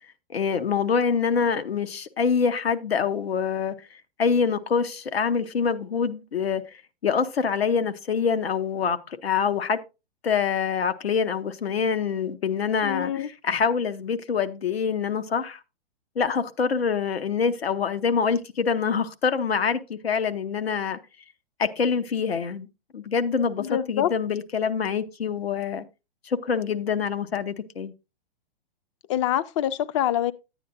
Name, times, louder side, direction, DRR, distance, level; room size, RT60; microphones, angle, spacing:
voice 1, 0.3-3.8 4.2-6.6 7.0-9.8 10.2-15.6 16.2-21.0 21.6-22.7 22.9-25.8 26.3-27.9, left 6 dB, 90° left, 0.9 m, -25 dB
voice 2, 12.8-13.3 23.6-24.1 29.1-30.3, left 11 dB, 35° left, 0.4 m, -25 dB
10.0 x 9.2 x 2.5 m
hypercardioid pair, 130°, 30 cm